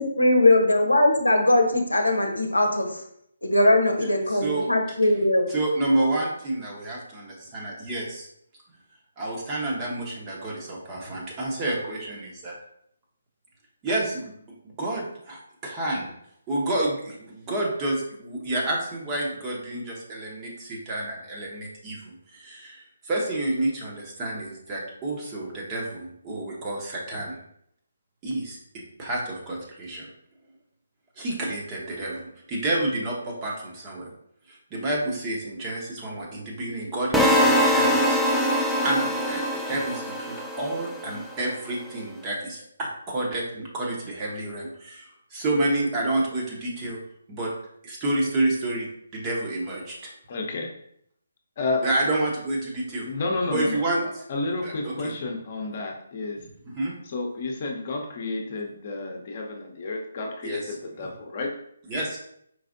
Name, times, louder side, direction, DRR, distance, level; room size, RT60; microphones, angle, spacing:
voice 1, 0.0-2.9 3.4-5.5, left 1 dB, 90° left, 3 dB, 0.7 m, -20 dB
voice 2, 5.5-8.3 9.2-12.6 13.8-14.3 14.6-16.1 16.5-27.4 28.2-28.6 29.0-30.1 31.2-32.2 32.5-34.1 34.5-38.2 38.8-47.0 47.3-47.5 47.8-48.9 49.1-50.1 51.8-53.1 53.5-54.2 54.6-55.1 56.8-56.9 60.4-60.8 61.9-62.2, right 1 dB, 20° right, -3 dB, 1.0 m, -29 dB
sound 1, 37.1-41.2, equal, ahead, 0.3 m, -23 dB
voice 3, 50.3-50.7 51.6-51.8 53.0-56.4 57.0-61.5, left 3 dB, 40° left, 1 dB, 0.8 m, -31 dB
4.7 x 3.3 x 2.6 m, 0.71 s
figure-of-eight pair, 145°, 0 cm